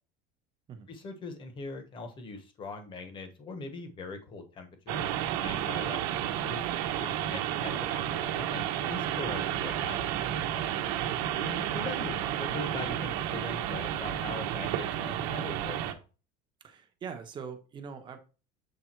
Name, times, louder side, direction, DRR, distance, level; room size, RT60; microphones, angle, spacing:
voice 1, 0.9-5.1 5.4-6.6 7.0-10.1 11.3-15.8, left 3 dB, 25° left, 1.2 m, -41 dB
sound 1, 4.9-15.9, right 11 dB, 80° right, 1.0 m, -31 dB
voice 2, 11.0-11.4 16.6-18.2, right 6 dB, 25° right, 0.9 m, -43 dB
7.7 x 3.5 x 4.5 m
cardioid pair, 170°, 19 cm